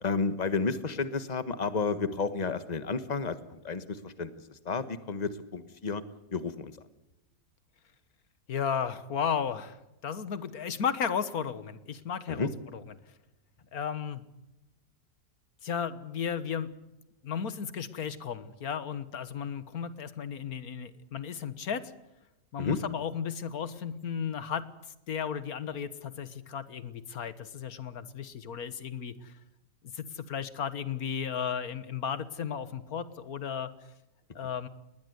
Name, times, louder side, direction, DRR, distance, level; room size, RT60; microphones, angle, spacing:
voice 1, 0.0-6.0 6.3-6.7 12.3-12.5 22.6-22.8, left 4 dB, 25° left, 13 dB, 1.3 m, -31 dB
voice 2, 8.5-9.8 10.0-12.8 13.7-14.2 15.6-16.7 17.2-21.8 22.5-24.7 25.1-29.3 29.8-33.7 34.4-34.7, left 7 dB, 65° left, 14 dB, 1.8 m, -34 dB
20.0 x 20.0 x 8.1 m, 0.95 s
omnidirectional pair, 1.8 m